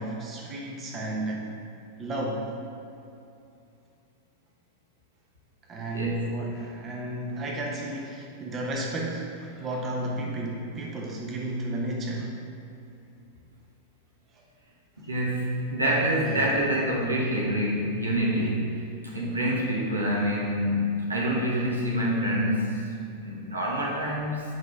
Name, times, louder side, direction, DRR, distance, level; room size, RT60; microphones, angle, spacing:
voice 1, 0.0-1.5 2.0-2.5 5.7-12.3 16.2-16.4, right 1 dB, 25° right, -1 dB, 1.1 m, -33 dB
voice 2, 5.9-6.3 15.0-22.8 23.2-24.4, equal, 80° right, -4 dB, 1.6 m, -26 dB
8.1 x 5.5 x 4.7 m, 2.6 s
figure-of-eight pair, 90°, 0 cm